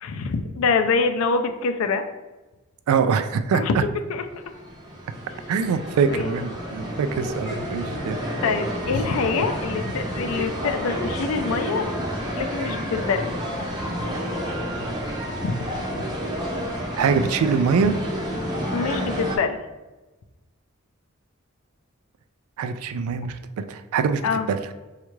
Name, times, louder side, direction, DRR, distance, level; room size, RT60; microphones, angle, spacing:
voice 1, 0.0-2.0 3.5-3.8 4.1-4.2 6.1-6.4 7.9-8.0 8.4-11.9 12.3-13.3 15.4-15.7 18.7-19.6 24.2-24.5, left 4 dB, 75° left, 7 dB, 0.4 m, -25 dB
voice 2, 2.9-3.8 5.5-8.2 17.0-17.9 22.6-24.2 24.5-24.6, right 6 dB, 85° right, 11 dB, 0.3 m, -23 dB
sound 1, 4.3-19.4, equal, 20° right, 0.5 m, -30 dB
4.3 x 2.4 x 3.1 m, 1.1 s
head